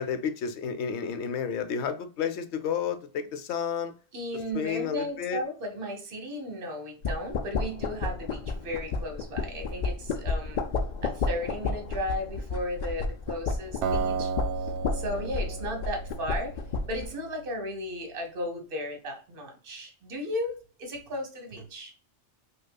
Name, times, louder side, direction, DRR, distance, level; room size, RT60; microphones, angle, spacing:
voice 1, 0.0-3.9 4.5-5.4, left 7 dB, 75° left, 0.9 m, -31 dB
voice 2, 4.1-10.6 11.0-14.3 14.9-16.5 16.9-20.5 20.8-21.9, equal, 55° right, 1.1 m, -35 dB
sound 1, 7.0-17.1, left 4 dB, 60° left, 0.5 m, -32 dB
Acoustic guitar, 13.8-17.0, right 5 dB, 75° right, 0.9 m, -33 dB
5.1 x 2.4 x 2.2 m
omnidirectional pair, 1.2 m